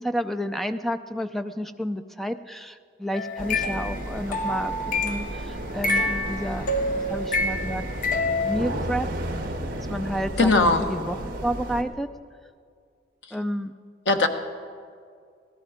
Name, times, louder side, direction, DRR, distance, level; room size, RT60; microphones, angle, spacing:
voice 1, 0.0-6.7 7.1-8.1 8.4-9.1 9.8-12.1 13.3-13.7, equal, ahead, 10 dB, 0.4 m, -30 dB
sound 1, 3.1-5.3 5.8-8.6, left 2 dB, 45° left, 0.8 m, -27 dB
sound 2, 3.4-11.8, right 1 dB, 50° right, 1.4 m, -33 dB
voice 2, 10.4-10.8 13.3-13.4 14.1-14.3, left 3 dB, 85° left, 6 dB, 1.2 m, -19 dB
17.5 x 13.5 x 5.0 m, 2.2 s
head